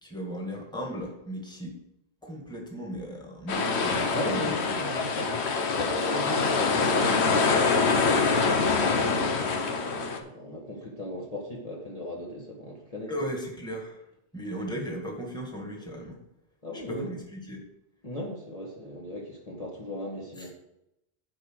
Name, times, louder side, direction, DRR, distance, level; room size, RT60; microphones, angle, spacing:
voice 1, 0.0-1.8 2.2-4.6 13.1-14.1 14.3-16.2 16.7-17.6 20.4-20.5, equal, 5° left, 0 dB, 1.8 m, -36 dB
sound 1, 3.5-10.2, left 4 dB, 90° left, 1.3 m, -25 dB
voice 2, 4.1-9.5 9.9-13.1 16.6-17.1 18.0-20.5, equal, 35° left, -3 dB, 1.5 m, -38 dB
9.6 x 5.0 x 6.3 m, 0.85 s
omnidirectional pair, 1.1 m